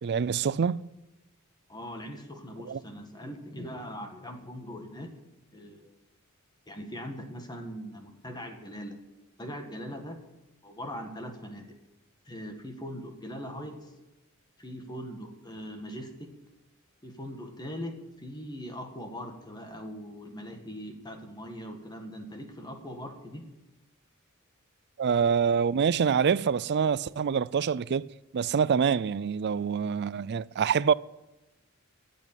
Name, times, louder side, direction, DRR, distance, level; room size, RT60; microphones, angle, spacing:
voice 1, 0.0-0.8 2.7-2.8 25.0-28.1 28.3-30.9, right 6 dB, 50° right, 0.4 m, -26 dB
voice 2, 1.7-5.1 5.5-5.9 6.7-9.0 9.4-10.2 10.6-11.8 12.2-14.0 14.6-16.3 17.0-23.5, equal, 20° left, 1.9 m, -41 dB
14.5 x 8.5 x 9.1 m
head